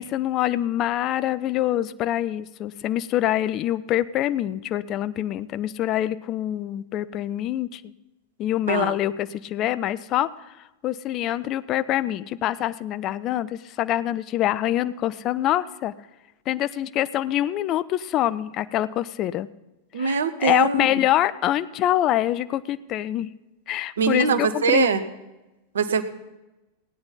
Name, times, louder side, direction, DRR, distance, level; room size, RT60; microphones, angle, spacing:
voice 1, 0.0-7.9 8.4-15.9 16.5-19.5 19.9-23.3 23.7-25.0, left 13 dB, 35° left, 14 dB, 0.4 m, -25 dB
voice 2, 19.9-20.9 24.0-25.0 25.7-26.0, right 6 dB, 65° right, 12 dB, 0.7 m, -22 dB
16.5 x 9.5 x 4.0 m, 1.0 s
figure-of-eight pair, 90°, 0 cm